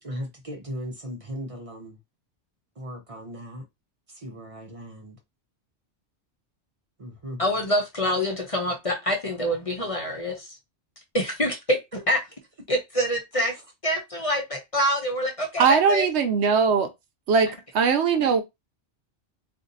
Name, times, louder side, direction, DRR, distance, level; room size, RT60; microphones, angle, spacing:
voice 1, 0.0-2.0 2.8-3.6 4.1-5.2 7.0-7.4 11.9-12.0, equal, 35° right, 0.6 m, -37 dB
voice 2, 7.4-10.6 11.1-11.8 12.1-12.2 12.7-13.5 13.8-16.0, equal, 35° left, 0.7 m, -26 dB
voice 3, 15.6-16.9 17.3-18.4, right 5 dB, 75° right, 0.9 m, -20 dB
2.6 x 2.5 x 3.9 m
omnidirectional pair, 1.2 m